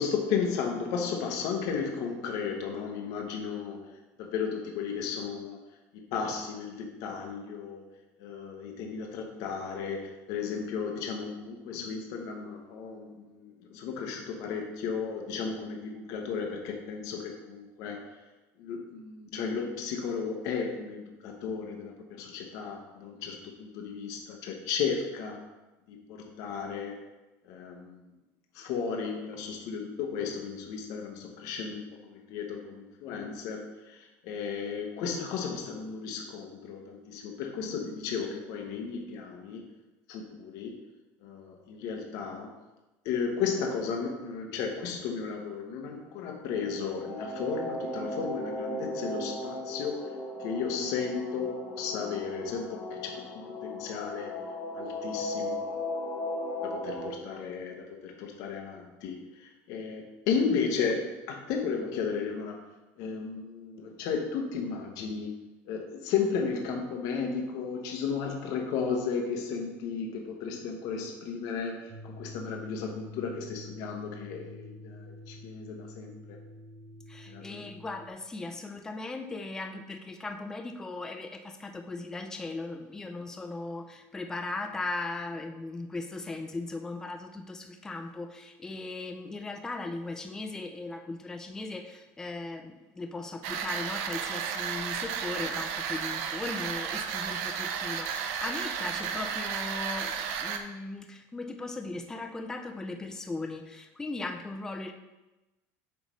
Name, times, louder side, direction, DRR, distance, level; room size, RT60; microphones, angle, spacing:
voice 1, 0.0-3.9 4.2-5.6 5.9-7.9 8.2-18.1 18.6-25.4 25.9-27.0 27.4-28.0 28.5-33.6 33.9-39.7 40.1-40.8 41.2-42.5 43.0-53.1 53.8-54.3 54.7-55.7 56.6-62.6 63.0-65.4 65.7-76.4 77.3-77.7, left 6 dB, 60° left, 1 dB, 0.9 m, -34 dB
sound 1, 46.4-57.1, left 1 dB, 40° left, 2.3 m, -36 dB
sound 2, 71.9-78.1, left 1 dB, 25° right, 0.9 m, -47 dB
voice 2, 77.1-104.9, left 3 dB, 10° left, 5 dB, 0.4 m, -38 dB
sound 3, 93.4-100.6, right 7 dB, 85° right, 0.7 m, -33 dB
8.0 x 3.1 x 5.3 m, 1.1 s
cardioid pair, 160°, 7 cm